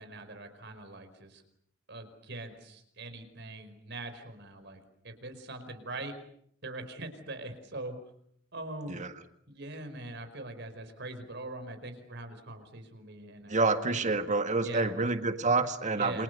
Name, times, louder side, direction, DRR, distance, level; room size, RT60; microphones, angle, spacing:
voice 1, 0.0-1.4 1.9-6.1 6.6-8.0 8.5-9.0 9.5-14.1 14.6-15.1 16.0-16.2, right 2 dB, 60° right, 8 dB, 5.1 m, -42 dB
voice 2, 13.5-16.2, right 3 dB, 40° right, 8 dB, 1.8 m, -28 dB
29.0 x 26.5 x 6.8 m, 0.69 s
head